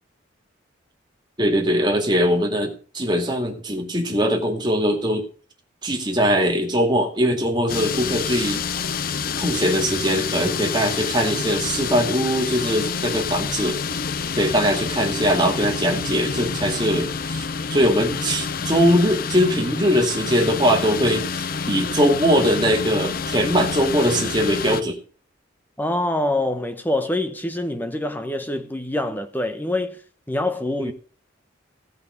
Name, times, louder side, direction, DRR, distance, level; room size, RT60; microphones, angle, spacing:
voice 1, 1.4-5.3 5.8-8.6 9.4-14.0 14.4-17.4 17.7-25.0 30.8-30.9, equal, 25° right, 2.3 m, -21 dB
sound 1, 7.7-24.8, left 5 dB, 50° left, 0.6 m, -28 dB
sound 2, 15.9-21.5, left 1 dB, 80° left, 3.5 m, -44 dB
voice 2, 25.8-30.0 30.3-30.9, left 1 dB, 10° left, 1.1 m, -25 dB
16.5 x 5.5 x 6.4 m
head